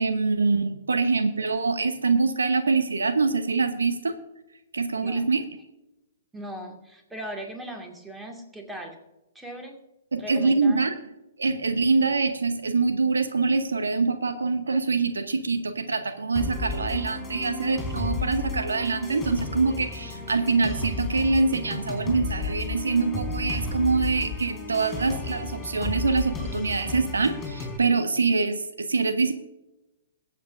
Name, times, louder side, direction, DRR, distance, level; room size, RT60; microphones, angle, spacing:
voice 1, 0.0-4.1 4.7-5.4 10.1-10.9 11.4-29.3, right 4 dB, 75° right, 9 dB, 1.0 m, -24 dB
voice 2, 5.0-5.4 6.3-9.0 9.3-9.8 10.2-10.8, right 1 dB, 5° right, 3 dB, 2.1 m, -39 dB
sound 1, 16.4-27.8, left 3 dB, 15° left, 4.3 m, -33 dB
21.5 x 8.0 x 2.6 m, 0.96 s
figure-of-eight pair, 120°, 0 cm